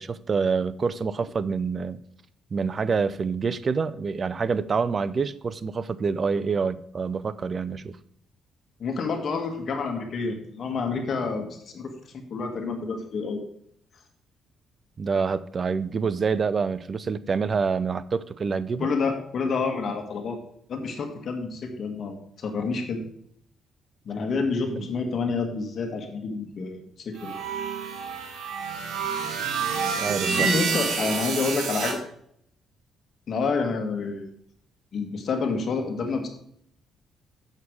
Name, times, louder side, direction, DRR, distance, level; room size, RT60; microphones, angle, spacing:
voice 1, 0.0-2.0 2.5-8.0 15.0-18.9 24.7-24.9 30.0-30.5, right 5 dB, 40° right, 15 dB, 0.5 m, -27 dB
voice 2, 8.8-13.4 18.8-20.4 20.7-23.0 24.0-27.3 30.4-32.0 33.3-34.3 34.9-36.3, left 4 dB, 55° left, 5 dB, 1.6 m, -28 dB
sound 1, 27.2-31.9, right 6 dB, 85° right, 1.7 m, -28 dB
8.4 x 6.6 x 4.7 m, 0.70 s
cardioid pair, 90°, 0 cm